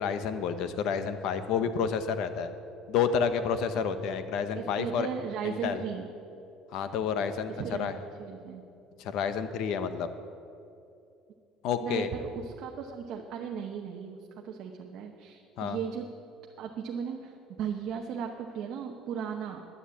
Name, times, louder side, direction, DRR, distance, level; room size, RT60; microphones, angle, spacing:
voice 1, 0.0-2.5 2.9-5.1 5.4-5.8 6.7-8.0 9.0-10.1 11.6-12.1 15.6-15.8, left 7 dB, 55° left, 10 dB, 0.8 m, -29 dB
voice 2, 4.6-6.1 7.6-7.9 8.2-8.6 11.8-14.2 14.4-16.1 16.6-19.6, right 7 dB, 45° right, 2 dB, 0.9 m, -36 dB
11.0 x 10.0 x 8.3 m, 2.7 s
cardioid pair, 175°, 0 cm